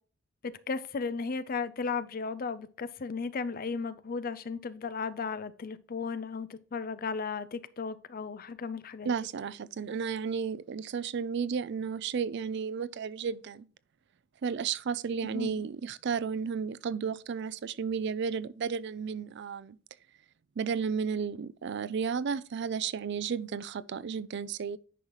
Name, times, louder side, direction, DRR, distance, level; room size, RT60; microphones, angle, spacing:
voice 1, 0.4-9.1 15.2-15.6, left 5 dB, 45° left, 0.5 m, -35 dB
voice 2, 9.0-13.7 14.4-19.8 20.6-24.8, right 6 dB, 60° right, 0.4 m, -33 dB
10.0 x 5.6 x 3.1 m
head